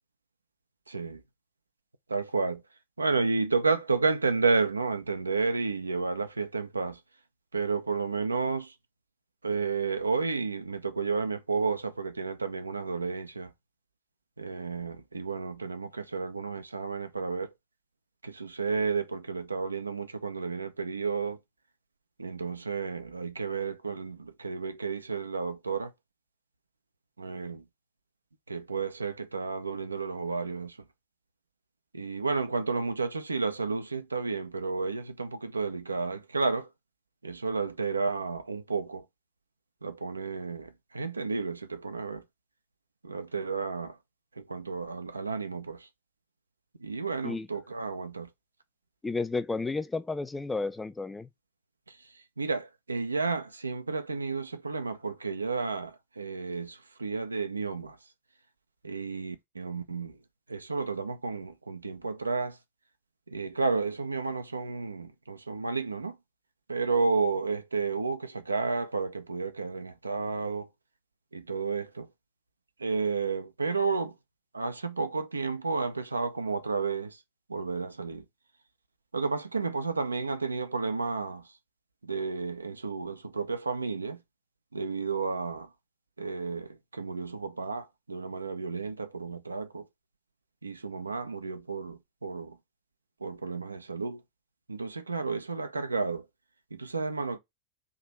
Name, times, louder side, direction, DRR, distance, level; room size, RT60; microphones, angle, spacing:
voice 1, 0.9-1.2 2.1-2.6 3.0-7.0 7.5-8.7 9.4-13.5 14.4-17.5 18.2-21.4 22.2-25.9 27.2-27.6 28.5-30.7 31.9-36.7 37.2-39.0 39.8-42.2 43.0-43.9 44.4-45.8 46.8-48.3 52.4-55.9 56.2-57.9 58.8-60.1 60.5-62.5 63.3-66.1 66.7-70.7 71.3-72.1 72.8-74.1 74.5-77.1 77.5-78.2 79.1-81.4 82.0-84.2 84.7-85.7 86.2-89.8 90.6-92.5 93.2-94.2 94.7-96.2 96.7-97.4, right 4 dB, 80° right, 0.6 m, -31 dB
voice 2, 49.0-51.3, left 3 dB, 10° left, 0.4 m, -32 dB
3.7 x 2.8 x 4.4 m
figure-of-eight pair, 90°, 0 cm